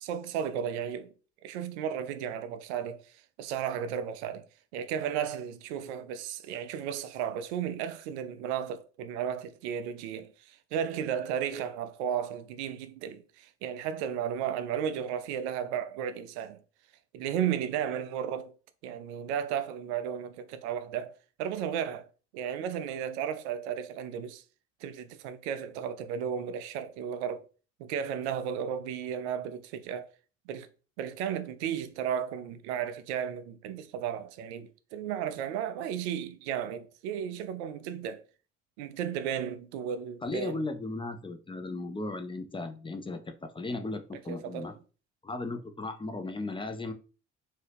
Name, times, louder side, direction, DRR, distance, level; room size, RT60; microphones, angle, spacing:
voice 1, 0.0-1.1 1.4-4.5 4.7-16.6 17.1-18.5 18.8-22.1 22.3-24.4 24.8-27.5 27.8-30.1 30.5-30.7 31.0-38.2 38.8-40.7 44.3-44.7, right 8 dB, 75° right, 0.5 m, -34 dB
voice 2, 40.2-44.7 45.2-46.9, left 2 dB, 15° left, 0.6 m, -36 dB
2.7 x 2.7 x 3.4 m
hypercardioid pair, 50°, 34 cm